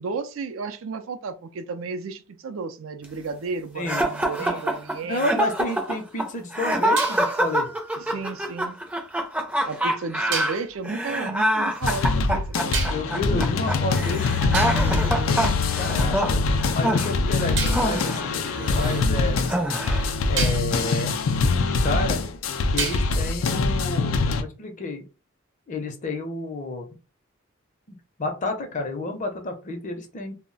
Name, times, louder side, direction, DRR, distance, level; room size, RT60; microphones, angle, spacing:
voice 1, 0.0-5.4 8.0-8.8 9.7-12.8, right 4 dB, 85° right, 0.4 m, -33 dB
sound 1, 3.9-19.0 19.5-20.2, right 1 dB, 5° right, 0.4 m, -26 dB
sound 2, 4.4-5.8 7.0-9.1 10.3-10.7 12.7-13.3 14.0-14.1 14.5-16.2 17.6-19.7 20.4-20.8 22.8-23.4, right 5 dB, 65° right, 0.8 m, -35 dB
voice 2, 5.0-7.7 8.0-8.1 12.9-16.4 16.7-19.4 20.3-21.1 21.6-22.2 22.7-25.0 25.7-26.8 28.2-30.3, left 2 dB, 40° left, 0.6 m, -30 dB
sound 3, 11.8-24.4, left 3 dB, 90° left, 0.4 m, -24 dB
2.2 x 2.1 x 3.8 m
head